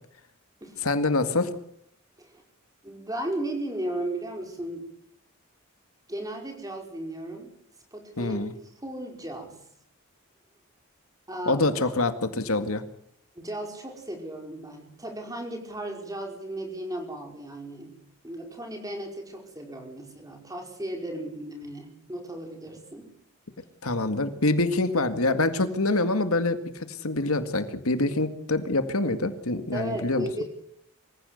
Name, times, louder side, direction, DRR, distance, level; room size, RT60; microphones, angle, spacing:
voice 1, 0.8-1.5 8.2-8.5 11.5-12.8 23.8-30.3, left 2 dB, 75° left, 9 dB, 2.0 m, -25 dB
voice 2, 2.8-4.9 6.1-7.5 7.9-8.4 8.8-9.6 11.3-11.8 13.3-17.9 18.2-23.1 29.7-30.4, right 1 dB, 15° right, 3 dB, 5.0 m, -35 dB
25.0 x 15.5 x 8.0 m, 0.70 s
head